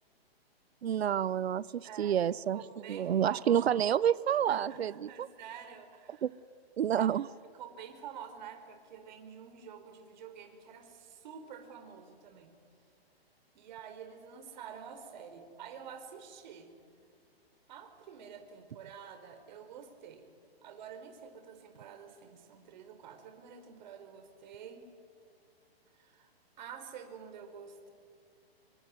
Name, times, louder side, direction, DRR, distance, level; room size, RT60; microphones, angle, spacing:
voice 1, 0.8-2.6 2.9-4.9 5.2-5.3 6.2-6.3 6.8-7.2, right 9 dB, 85° right, 20 dB, 0.8 m, -28 dB
voice 2, 1.8-2.2 2.5-3.8 4.5-6.2 7.0-7.3 7.5-12.5 13.5-16.7 17.7-20.3 20.6-24.8 25.9-26.3 26.6-27.9, right 7 dB, 45° right, 7 dB, 4.5 m, -48 dB
26.5 x 23.5 x 9.6 m, 2.3 s
hypercardioid pair, 160°, 31 cm